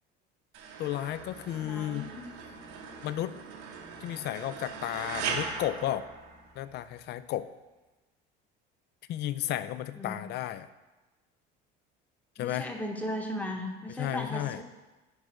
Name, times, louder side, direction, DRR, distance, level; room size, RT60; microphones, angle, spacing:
sound 1, 0.5-6.8, right 5 dB, 80° right, 1.1 m, -40 dB
voice 1, 0.8-2.1 3.0-3.3 4.0-6.1 6.6-7.5 9.1-10.7 12.4-12.7 14.0-14.6, left 13 dB, 50° left, 14 dB, 0.4 m, -33 dB
voice 2, 1.5-2.2 9.9-10.2 12.4-14.6, left 1 dB, 5° left, 2 dB, 1.0 m, -36 dB
6.3 x 5.1 x 4.8 m, 1.1 s
supercardioid pair, 105°, 21 cm